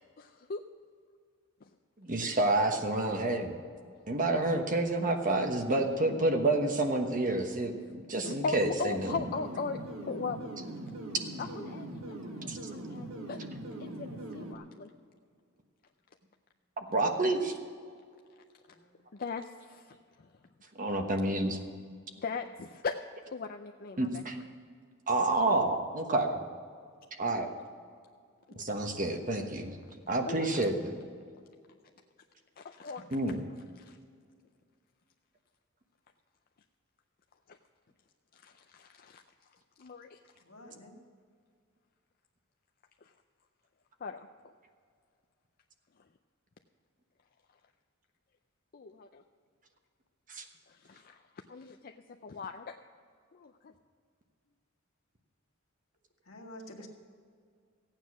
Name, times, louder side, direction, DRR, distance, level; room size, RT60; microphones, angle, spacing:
voice 1, 0.2-0.6 1.6-1.7 5.7-5.8 6.2-6.3 7.8-7.9 8.2-9.8 10.1-10.5 11.4-13.4 13.8-14.9 19.1-20.3 22.2-22.9 23.3-24.2 28.5-28.7 29.8-30.0 30.2-30.7 32.6-33.4 33.8-34.0 37.5-37.6 38.3-39.2 39.8-40.2 43.0-43.1 44.0-44.5 48.7-49.2 50.7-51.2 51.5-52.8 53.3-53.7, left 4 dB, 45° left, 5 dB, 0.5 m, -39 dB
voice 2, 2.0-3.6 4.1-9.1 12.5-12.6 16.9-17.5 20.8-21.6 24.0-24.4 25.1-26.4 27.2-27.5 28.5-29.8 30.1-30.7 33.1-33.4 50.3-50.4, right 2 dB, 40° right, 4 dB, 1.2 m, -29 dB
sound 1, 8.9-14.5, right 1 dB, 75° right, 1.7 m, -41 dB
voice 3, 40.5-41.0 56.3-56.9, left 1 dB, 65° left, 1 dB, 1.9 m, -48 dB
15.0 x 9.0 x 6.1 m, 2.1 s
head